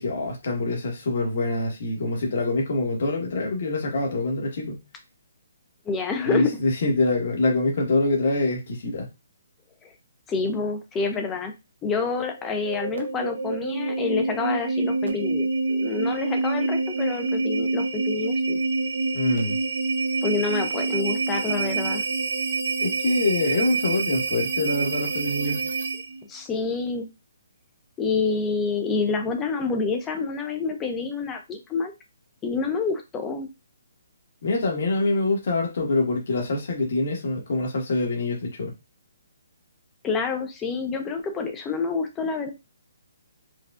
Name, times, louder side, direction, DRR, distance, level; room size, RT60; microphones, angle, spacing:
voice 1, 0.0-4.8 6.2-9.1 19.1-19.6 22.8-25.6 34.4-38.7, left 2 dB, 50° left, 0 dB, 1.3 m, -25 dB
voice 2, 5.9-6.5 9.8-9.9 10.3-11.5 11.8-18.6 20.2-22.0 26.3-27.1 28.0-31.9 32.4-33.5 40.0-42.5, left 4 dB, 10° left, 5 dB, 0.5 m, -28 dB
sound 1, 12.3-26.2, right 3 dB, 65° right, 0.8 m, -27 dB
4.6 x 2.4 x 2.4 m, 0.24 s
hypercardioid pair, 170°, 0 cm